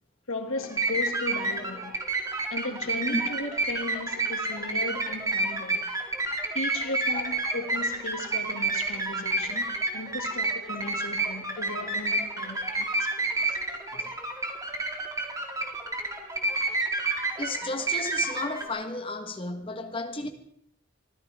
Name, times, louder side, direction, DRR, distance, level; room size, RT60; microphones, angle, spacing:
voice 1, 0.3-2.0 2.5-5.9 6.5-13.1 13.5-13.6, left 2 dB, 75° left, 2.3 m, -36 dB
sound 1, 0.6-18.7, right 3 dB, 15° right, 2.1 m, -30 dB
voice 2, 17.4-20.3, left 2 dB, 25° left, 1.5 m, -33 dB
24.0 x 14.5 x 3.7 m
head